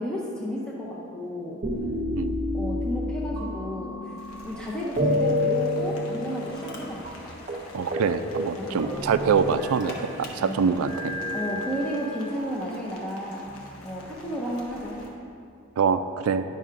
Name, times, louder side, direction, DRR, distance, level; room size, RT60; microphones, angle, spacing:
voice 1, 0.0-1.6 2.5-4.2 4.4-7.3 8.5-9.0 10.4-10.6 11.3-13.5 13.8-15.0, equal, 5° left, -6 dB, 0.5 m, -33 dB
sound 1, 1.6-4.6 5.0-6.8 7.0-7.2 7.5-7.7 7.9-8.1 8.3-10.1 10.8-12.4 13.1-14.0, left 1 dB, 35° right, 0.9 m, -29 dB
Rain, 4.2-15.1, left 1 dB, 85° left, 1.0 m, -49 dB
Drill, 5.6-10.7, left 1 dB, 50° left, 0.9 m, -44 dB
voice 2, 7.7-11.1 15.8-16.4, right 6 dB, 80° right, 10 dB, 0.3 m, -24 dB
10.5 x 5.4 x 2.5 m, 2.5 s
head